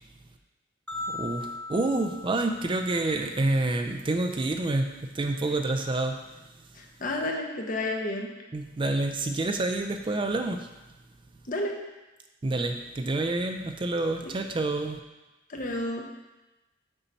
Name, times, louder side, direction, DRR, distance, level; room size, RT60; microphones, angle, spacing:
sound 1, 0.9-3.2, left 2 dB, 5° left, 0.7 m, -38 dB
voice 1, 1.1-6.2 8.5-10.7 12.4-15.0, right 2 dB, 25° right, 5 dB, 0.4 m, -28 dB
voice 2, 6.7-8.3 11.5-11.8 15.5-16.0, left 1 dB, 45° left, 1 dB, 1.0 m, -31 dB
7.0 x 5.5 x 4.1 m, 1.1 s
head